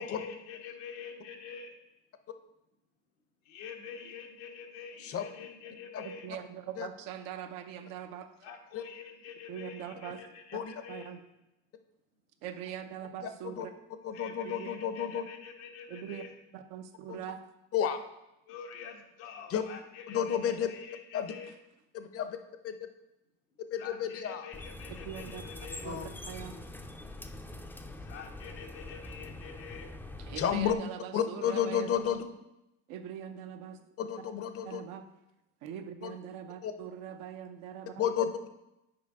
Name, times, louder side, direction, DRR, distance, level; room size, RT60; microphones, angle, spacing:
voice 1, 0.0-1.7 3.4-6.3 8.4-11.1 14.1-16.3 18.5-21.5 23.8-25.9 28.1-29.9, left 6 dB, 85° left, 2 dB, 1.1 m, -46 dB
voice 2, 6.0-8.3 9.5-10.2 10.9-11.2 12.4-13.7 14.4-14.7 15.9-16.2 16.5-17.4 25.0-25.4 25.8-26.6 30.2-32.0 32.9-33.8 34.6-35.0 35.6-38.0, right 9 dB, 75° right, 7 dB, 0.7 m, -42 dB
voice 3, 14.0-15.3 17.1-17.2 17.7-18.0 19.5-19.6 20.1-20.7 21.1-21.3 21.9-22.4 22.6-22.7 23.7-24.5 25.8-26.1 30.4-30.8 31.1-32.2 34.0-34.8 36.0-36.1 36.6-36.7 38.0-38.5, left 8 dB, 40° left, 9 dB, 0.7 m, -31 dB
sound 1, 24.5-30.7, left 2 dB, 5° left, 0.5 m, -44 dB
6.8 x 4.7 x 3.5 m, 0.90 s
supercardioid pair, 90°, 34 cm